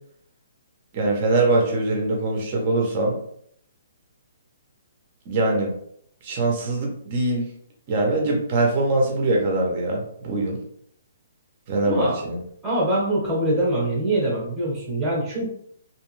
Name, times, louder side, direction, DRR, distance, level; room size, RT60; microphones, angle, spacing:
voice 1, 0.9-3.2 5.3-5.7 6.2-7.5 7.9-10.6 11.7-12.4, right 2 dB, 25° right, 0 dB, 0.5 m, -22 dB
voice 2, 11.8-12.2 12.6-15.5, right 1 dB, 5° right, -5 dB, 0.8 m, -23 dB
2.6 x 2.2 x 3.0 m, 0.66 s
hypercardioid pair, 180°, 0 cm